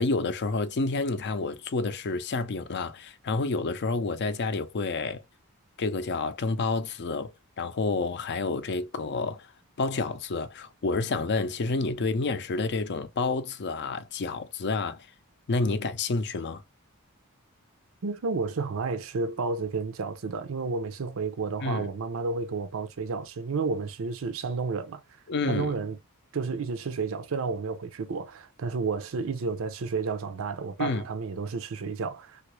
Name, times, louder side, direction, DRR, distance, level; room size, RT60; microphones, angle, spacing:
voice 1, 0.0-5.2 5.8-7.3 7.6-9.5 9.8-15.1 15.5-16.6 21.6-21.9 25.3-25.7 30.8-31.0, left 3 dB, 50° left, 0.5 m, -29 dB
voice 2, 18.0-25.0 25.5-26.0 26.3-32.4, right 4 dB, 65° right, 0.5 m, -31 dB
3.3 x 2.5 x 3.0 m
head